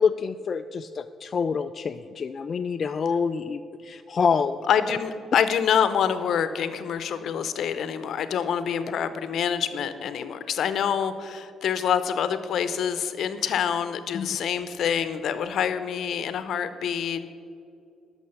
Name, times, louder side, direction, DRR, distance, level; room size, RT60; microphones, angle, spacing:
voice 1, 0.0-4.6 14.1-14.4, left 5 dB, 45° left, 8 dB, 0.3 m, -27 dB
voice 2, 4.7-17.2, left 8 dB, 70° left, 12 dB, 0.7 m, -26 dB
12.0 x 6.2 x 7.0 m, 2.5 s
cardioid pair, 90°, 0 cm